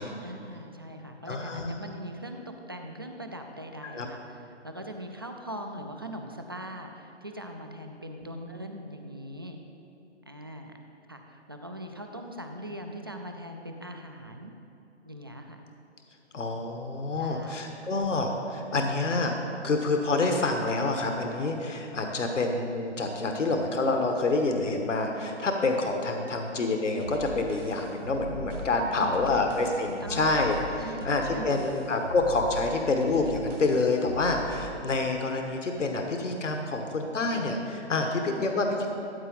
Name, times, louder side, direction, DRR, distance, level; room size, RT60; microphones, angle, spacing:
voice 1, 0.2-9.6 10.3-10.7 11.1-14.5 15.1-15.6 17.2-17.7 28.8-29.4 29.8-30.3 30.8-31.7, equal, 20° right, 4 dB, 0.3 m, -41 dB
voice 2, 1.3-1.7 3.9-4.1 16.3-19.3 19.6-38.9, left 3 dB, 85° left, 3 dB, 1.3 m, -27 dB
sound 1, 27.0-34.8, right 1 dB, 90° right, 1.9 m, -40 dB
13.5 x 8.3 x 4.0 m, 2.8 s
hypercardioid pair, 145°, 36 cm